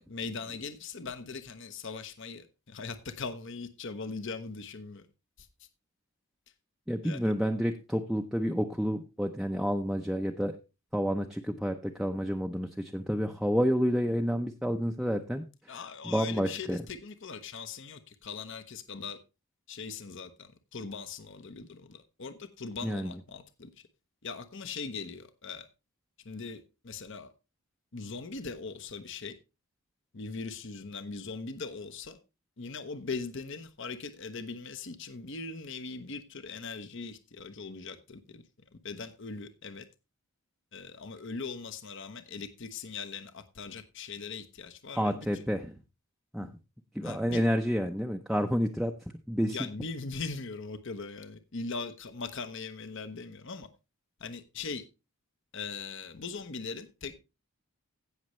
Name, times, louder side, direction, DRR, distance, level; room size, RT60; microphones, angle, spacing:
voice 1, 0.0-5.1 5.4-5.5 7.0-7.3 15.7-19.2 19.7-23.7 24.2-25.7 26.2-27.3 27.9-29.3 30.1-32.2 32.6-38.4 38.7-39.9 40.7-45.4 46.4-46.5 47.0-47.4 49.4-53.7 54.2-54.8 55.5-57.1, left 4 dB, 55° left, 0.9 m, -40 dB
voice 2, 6.9-10.6 10.9-16.8 22.8-23.1 44.9-45.8 46.3-46.5 46.9-48.9 49.3-49.7, equal, ahead, 0.5 m, -29 dB
16.5 x 6.4 x 3.1 m
head